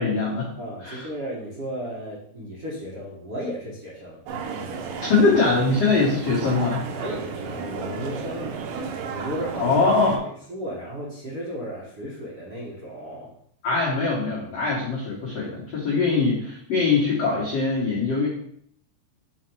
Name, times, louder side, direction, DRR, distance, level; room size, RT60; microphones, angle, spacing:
voice 1, 0.0-0.5 0.8-1.0 5.0-6.8 9.6-10.2 13.6-18.3, left 4 dB, 70° left, -6 dB, 1.5 m, -22 dB
voice 2, 0.6-4.2 6.9-8.6 9.0-9.8 10.2-13.3, equal, 55° right, -8 dB, 1.6 m, -34 dB
sound 1, 4.3-10.2, right 5 dB, 80° right, 2.0 m, -33 dB
5.6 x 4.3 x 4.6 m, 0.66 s
omnidirectional pair, 4.7 m